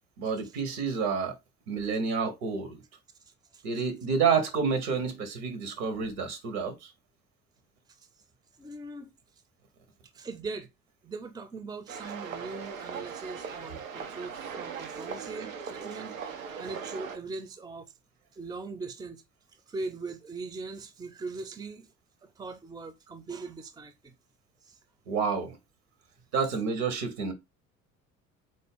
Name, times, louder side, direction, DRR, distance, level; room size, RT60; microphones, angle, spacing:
voice 1, 0.2-1.3 1.7-2.8 3.6-6.9 25.1-25.6 26.3-27.3, right 5 dB, 65° right, 1.1 m, -29 dB
voice 2, 8.6-9.1 10.1-10.7 11.0-17.9 18.3-19.2 19.7-21.9 22.2-24.1 24.7-24.8, right 3 dB, 10° right, 0.6 m, -40 dB
sound 1, 11.9-17.2, right 6 dB, 85° right, 0.6 m, -39 dB
4.0 x 2.7 x 3.6 m
figure-of-eight pair, 55°, 39 cm